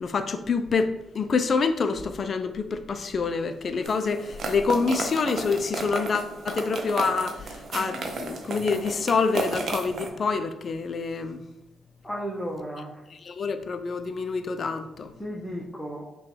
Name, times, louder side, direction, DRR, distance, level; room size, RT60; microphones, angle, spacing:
voice 1, 0.0-11.4 13.3-15.1, left 4 dB, 55° left, 0.4 m, -27 dB
sound 1, 3.8-10.1, right 3 dB, 60° right, 0.6 m, -34 dB
voice 2, 12.0-13.0 15.2-16.0, equal, 10° left, 0.8 m, -34 dB
5.7 x 2.3 x 3.2 m
hypercardioid pair, 45°, 0 cm